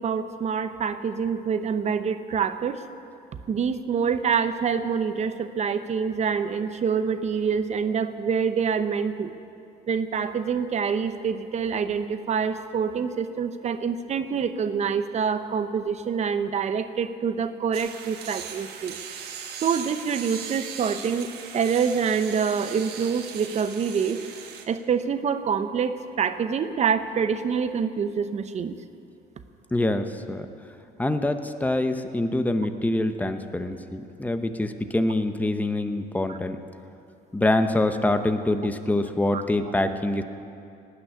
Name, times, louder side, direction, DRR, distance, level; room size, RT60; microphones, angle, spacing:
voice 1, 0.0-2.8 3.5-9.3 9.9-19.0 19.6-21.3 21.5-24.2 24.7-28.8 36.3-36.4 39.3-39.4, right 6 dB, 40° right, 10 dB, 0.8 m, -26 dB
sound 1, 17.7-24.6, right 7 dB, 75° right, 1.4 m, -39 dB
voice 2, 29.7-30.5 31.0-36.6 37.3-40.2, left 1 dB, 10° left, 8 dB, 0.8 m, -25 dB
18.5 x 6.2 x 9.7 m, 2.6 s
cardioid pair, 110°, 17 cm